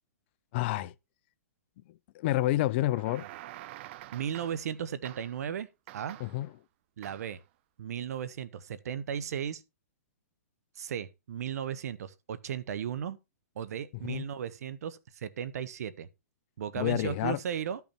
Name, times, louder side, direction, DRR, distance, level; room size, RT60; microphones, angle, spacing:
voice 1, 0.5-0.9 2.1-3.3 6.2-6.5 14.1-14.2 16.8-17.4, left 16 dB, 40° left, 0.5 m, -29 dB
sound 1, 2.8-4.8 5.0-5.5 5.9-6.5 7.0-7.4, right 15 dB, 45° right, 0.4 m, -47 dB
voice 2, 4.1-5.7 5.9-6.2 7.0-7.4 7.8-9.6 10.8-13.2 13.6-16.1 16.6-17.8, right 8 dB, 70° right, 1.0 m, -35 dB
12.0 x 5.8 x 4.3 m
hypercardioid pair, 140°, 9 cm